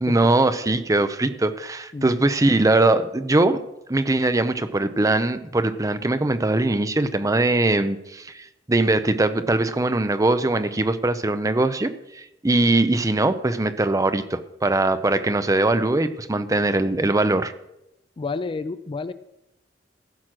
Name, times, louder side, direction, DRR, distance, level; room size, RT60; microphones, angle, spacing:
voice 1, 0.0-3.6 3.9-17.5, right 2 dB, 20° right, 11 dB, 0.6 m, -21 dB
voice 2, 1.9-2.3 18.2-19.1, left 4 dB, 25° left, 13 dB, 0.4 m, -30 dB
15.0 x 6.2 x 6.1 m, 0.87 s
head